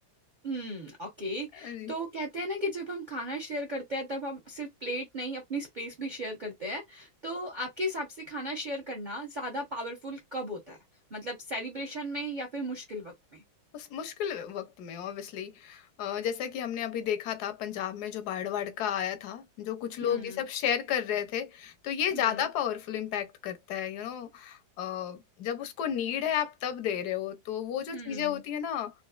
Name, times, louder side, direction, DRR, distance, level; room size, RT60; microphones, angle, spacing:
voice 1, 0.4-10.8 11.1-13.4 20.0-20.4 22.1-22.5 27.9-28.4, equal, 50° right, 0.5 m, -36 dB
voice 2, 1.6-1.9 13.7-28.9, left 9 dB, 70° left, 1.0 m, -32 dB
4.0 x 2.5 x 2.3 m
omnidirectional pair, 2.1 m